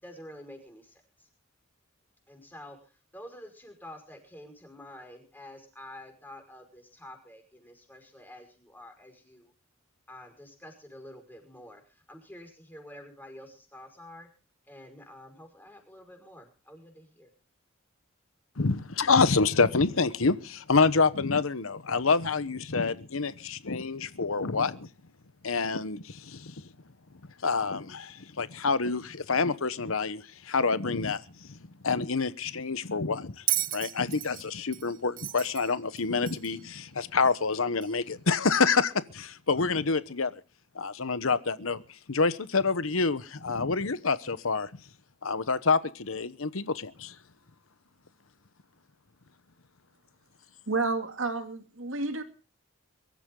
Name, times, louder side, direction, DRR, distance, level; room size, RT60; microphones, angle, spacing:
voice 1, 0.0-1.3 2.3-2.8 3.1-9.5 10.1-14.3 14.7-17.3, left 1 dB, 10° left, 5.4 m, -48 dB
voice 2, 18.6-24.9 25.4-26.5 27.4-31.2 31.5-31.6 31.8-33.4 33.7-40.4 40.7-41.8 42.1-44.7 45.2-47.1, left 4 dB, 75° left, 1.0 m, -27 dB
Bell, 33.5-36.7 37.8-37.9, right 14 dB, 40° right, 0.7 m, -34 dB
voice 3, 50.7-52.2, right 3 dB, 65° right, 2.6 m, -30 dB
23.5 x 13.5 x 3.8 m
head